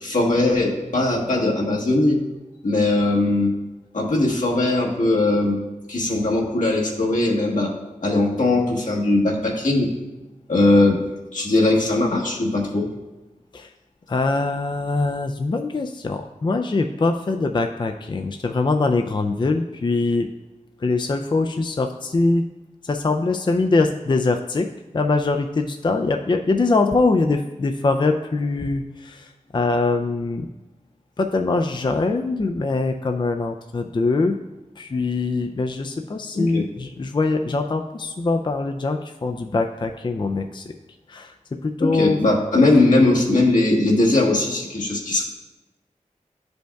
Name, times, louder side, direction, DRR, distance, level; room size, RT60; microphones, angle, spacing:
voice 1, 0.0-2.2 2.6-3.5 3.9-5.6 5.9-7.7 8.0-9.9 10.5-11.1 11.3-12.9 36.3-36.6 41.8-45.2, left 2 dB, 80° left, -2 dB, 1.3 m, -19 dB
voice 2, 14.1-20.3 20.8-22.4 22.8-24.7 24.9-30.5 31.2-34.3 34.8-40.7 41.1-42.2, left 3 dB, 35° left, 5 dB, 0.3 m, -23 dB
11.0 x 5.2 x 2.3 m, 1.1 s
wide cardioid pair, 70°, 13 cm